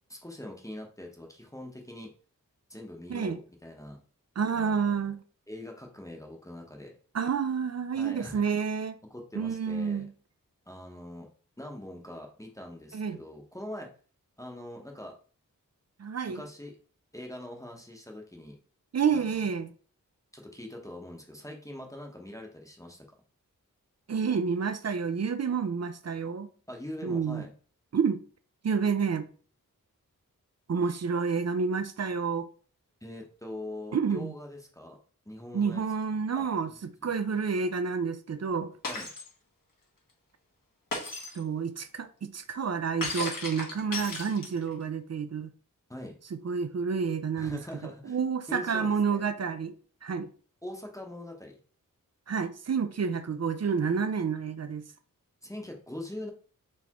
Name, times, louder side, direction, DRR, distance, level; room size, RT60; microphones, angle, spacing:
voice 1, 0.1-2.1 2.7-4.0 4.5-5.1 5.5-6.9 7.9-8.4 9.1-10.1 10.7-11.3 11.6-13.9 14.4-15.1 16.3-16.7 17.1-18.6 19.1-19.4 20.3-23.0 26.7-27.5 33.0-35.0 35.2-35.8 36.4-37.1 38.9-39.1 45.9-46.2 47.4-48.2 48.5-49.2 50.6-51.6 55.4-56.3, left 1 dB, 10° left, 0.9 m, -43 dB
voice 2, 4.4-5.2 7.1-9.0 9.3-10.1 12.9-13.2 16.0-16.4 18.9-19.7 24.1-26.5 27.0-27.4 27.9-28.2 28.6-29.3 30.7-32.5 33.9-34.3 35.5-38.7 41.3-45.5 46.4-49.7 50.0-50.3 52.3-54.9, right 6 dB, 50° right, 0.4 m, -29 dB
Shatter, 38.8-39.3 40.9-41.4 43.0-44.7, left 3 dB, 75° left, 1.3 m, -35 dB
4.3 x 3.3 x 2.9 m
wide cardioid pair, 70°, 34 cm